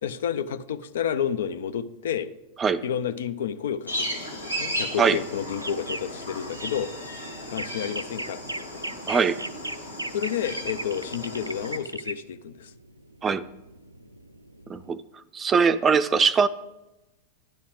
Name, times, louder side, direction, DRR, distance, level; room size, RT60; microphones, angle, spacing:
voice 1, 0.0-2.3 2.8-6.9 7.5-8.8 10.1-12.7, left 8 dB, 60° left, 12 dB, 0.5 m, -30 dB
sound 1, 3.9-11.8, equal, 85° left, 1.8 m, -35 dB
sound 2, 5.3-14.9, right 1 dB, 85° right, 0.4 m, -37 dB
voice 2, 9.1-9.4 13.2-13.4 14.7-15.0 15.3-16.5, right 5 dB, 20° right, 13 dB, 0.5 m, -21 dB
10.5 x 4.1 x 7.6 m, 0.97 s
figure-of-eight pair, 90°, 0 cm